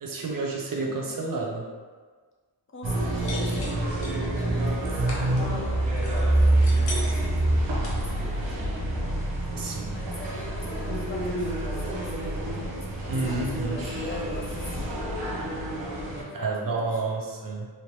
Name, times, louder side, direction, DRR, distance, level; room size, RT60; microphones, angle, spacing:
voice 1, 0.0-1.7 9.6-9.9 13.1-13.8 16.3-17.7, right 3 dB, 50° right, 0 dB, 0.5 m, -30 dB
voice 2, 0.7-1.4 2.7-3.8 4.3-6.1 6.4-8.3 9.9-15.2 16.1-17.2, left 1 dB, 30° left, -3 dB, 0.5 m, -42 dB
sound 1, 2.8-16.2, right 1 dB, 85° right, 0.8 m, -27 dB
sound 2, 3.2-4.2 4.8-5.2 6.0-7.3 7.8-8.4 8.8-8.9 9.3-9.4 9.6-9.7, left 2 dB, 90° left, 0.8 m, -39 dB
3.2 x 2.7 x 2.9 m, 1.5 s
wide cardioid pair, 160°, 42 cm